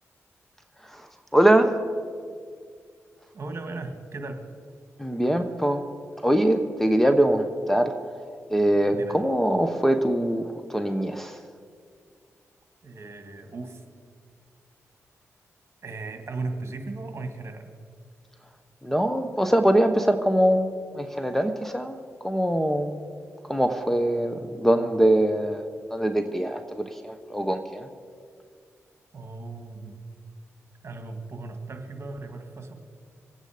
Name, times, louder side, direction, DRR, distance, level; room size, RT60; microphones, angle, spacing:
voice 1, 0.8-1.8 5.0-5.8 6.2-7.9 8.5-11.4 18.8-22.0 22.2-23.1 23.4-27.9, right 1 dB, 5° left, 7 dB, 1.1 m, -23 dB
voice 2, 3.3-4.4 8.9-9.2 12.8-13.8 15.8-17.7 29.1-29.9 30.8-32.7, right 3 dB, 50° right, 5 dB, 2.1 m, -36 dB
24.0 x 9.0 x 5.1 m, 2.1 s
cardioid pair, 65°, 6 cm